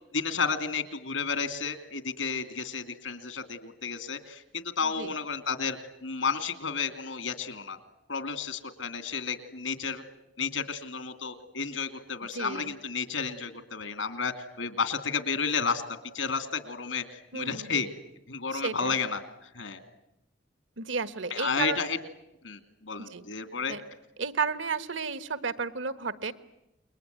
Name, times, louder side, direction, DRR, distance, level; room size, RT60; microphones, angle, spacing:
voice 1, 0.1-7.8 8.1-10.0 10.4-15.8 16.1-17.9 18.3-19.8 21.3-22.0 22.4-23.8, left 5 dB, 85° left, 10 dB, 2.7 m, -32 dB
voice 2, 4.8-5.1 12.3-12.7 17.3-17.8 18.5-18.9 20.8-21.9 23.1-23.2 23.7-23.8 24.2-26.3, right 5 dB, 80° right, 13 dB, 1.4 m, -33 dB
28.5 x 22.0 x 9.4 m, 0.87 s
head